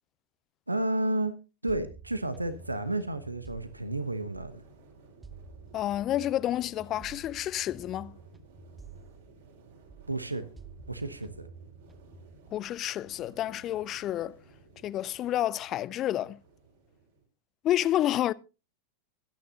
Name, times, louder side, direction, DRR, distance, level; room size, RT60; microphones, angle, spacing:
voice 1, 0.7-1.3 1.6-4.6 10.1-10.4 10.9-11.5, right 2 dB, 85° right, 1.1 m, -31 dB
sound 1, 1.7-4.8 5.2-9.6 9.9-12.3, right 4 dB, 10° right, 1.1 m, -50 dB
sound 2, 2.1-17.3, right 4 dB, 60° right, 5.5 m, -56 dB
voice 2, 5.7-8.2 12.5-14.4 14.8-16.4 17.6-18.3, left 13 dB, 30° left, 0.6 m, -29 dB
24.0 x 9.5 x 2.9 m
figure-of-eight pair, 90°, 0 cm